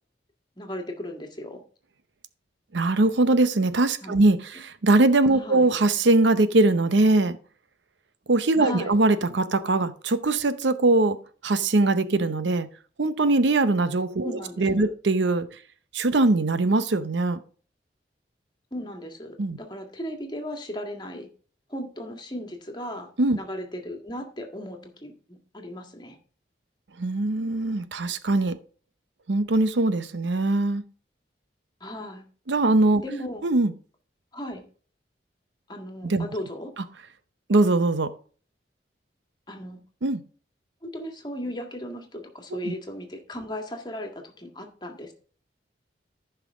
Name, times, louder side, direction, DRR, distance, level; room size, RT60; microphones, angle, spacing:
voice 1, 0.6-1.6 4.0-4.3 5.3-5.7 8.6-8.9 14.2-14.9 18.7-21.3 21.7-26.2 31.8-32.2 33.0-33.4 34.3-34.6 35.7-36.7 39.5-39.8 40.8-45.1, equal, 25° left, 3 dB, 1.7 m, -36 dB
voice 2, 2.7-7.4 8.3-11.2 11.4-12.7 13.0-14.3 14.6-15.5 15.9-17.4 19.4-19.6 23.2-23.4 27.0-28.5 29.3-30.8 32.5-33.0 33.4-33.7 36.0-36.3 37.5-38.1 40.0-40.2 42.6-42.7, right 2 dB, 80° right, 12 dB, 0.7 m, -21 dB
14.5 x 5.7 x 3.6 m, 0.41 s
head